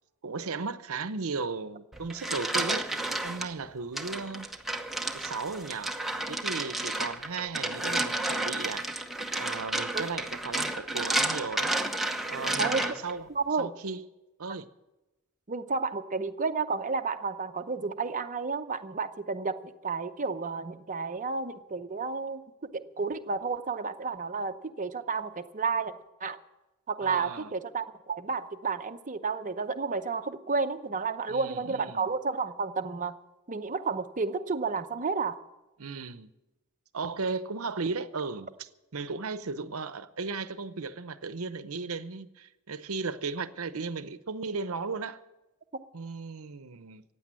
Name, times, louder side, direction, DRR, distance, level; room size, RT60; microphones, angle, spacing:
voice 1, 0.2-2.9 3.2-4.5 5.1-6.0 6.3-8.9 9.4-11.7 12.3-13.3 13.6-14.0 14.4-14.7 27.0-27.5 31.3-32.0 35.8-36.3 36.9-45.2 45.9-47.0, right 4 dB, 70° right, 0.8 m, -36 dB
sound 1, 1.9-3.5 4.0-13.2, right 1 dB, ahead, 0.9 m, -31 dB
voice 2, 12.6-13.0 13.3-13.7 15.5-22.4 22.7-26.4 26.9-33.2 33.5-35.4, right 4 dB, 35° right, 0.7 m, -31 dB
15.5 x 9.2 x 7.6 m
head